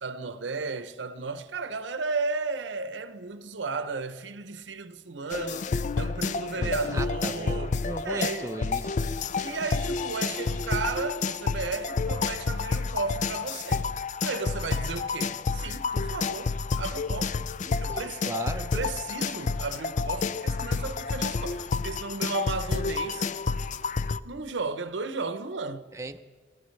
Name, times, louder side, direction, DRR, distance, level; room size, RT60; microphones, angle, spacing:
voice 1, 0.0-8.6 8.9-9.0 9.4-13.9 14.2-17.5 17.8-23.3 24.2-25.9, right 4 dB, 80° right, 0.7 m, -34 dB
sound 1, 5.3-24.2, left 4 dB, 45° left, 0.4 m, -30 dB
voice 2, 6.6-8.9 17.7-18.7 25.9-26.2, right 2 dB, 15° right, 0.5 m, -37 dB
28.5 x 13.5 x 3.2 m
head